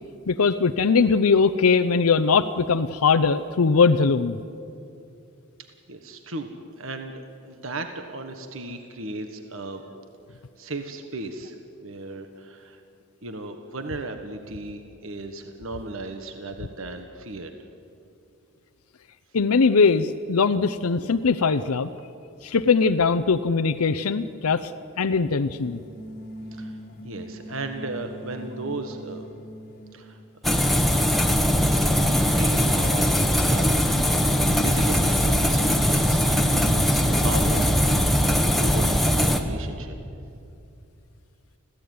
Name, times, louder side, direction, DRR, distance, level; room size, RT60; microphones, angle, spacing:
voice 1, 0.3-4.4 19.3-21.9 22.4-24.7 25.0-25.8, left 5 dB, 85° left, 9 dB, 0.7 m, -20 dB
voice 2, 5.9-6.5 6.8-9.8 10.3-11.5 11.8-12.8 13.2-17.5 26.5-26.8 27.0-29.3 29.9-30.5 32.3-33.8 34.2-36.2 36.7-37.7 38.1-40.0, right 2 dB, 65° right, 6 dB, 1.4 m, -36 dB
sound 1, 25.5-30.2, equal, 40° left, 1.5 m, -41 dB
sound 2, 30.4-39.4, equal, ahead, 1.3 m, -21 dB
26.0 x 16.0 x 9.5 m, 2.6 s
head